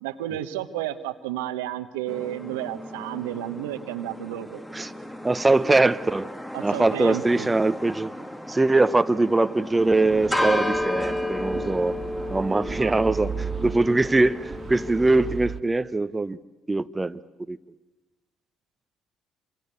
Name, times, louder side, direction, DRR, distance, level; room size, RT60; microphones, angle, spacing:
voice 1, 0.0-4.6 6.5-7.5 12.8-13.1, right 13 dB, 85° right, 9 dB, 1.2 m, -32 dB
sound 1, 2.1-15.4, left 1 dB, 10° left, 1.9 m, -33 dB
voice 2, 5.2-6.3 6.6-8.1 8.5-11.9 12.3-16.4 16.7-17.2 17.5-17.6, right 2 dB, 20° right, 12 dB, 0.9 m, -22 dB
sound 2, 9.8-15.6, right 6 dB, 40° right, 2.0 m, -36 dB
27.0 x 26.0 x 8.3 m, 1.1 s
hypercardioid pair, 50°, 0 cm